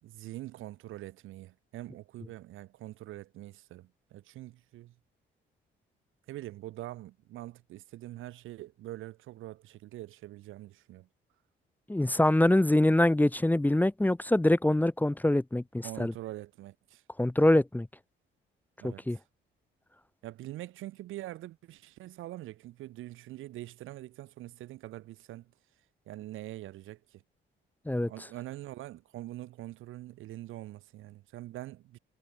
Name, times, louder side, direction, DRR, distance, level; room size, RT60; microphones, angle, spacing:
voice 1, 0.0-4.9 6.3-11.1 15.8-17.0 18.8-19.2 20.2-25.5 26.1-27.2 28.1-32.0, right 15 dB, 90° right, 4.2 m, -44 dB
voice 2, 11.9-16.1 17.2-17.9 18.8-19.2 27.9-28.1, left 1 dB, 10° left, 1.2 m, -24 dB
cardioid pair, 90°, 20 cm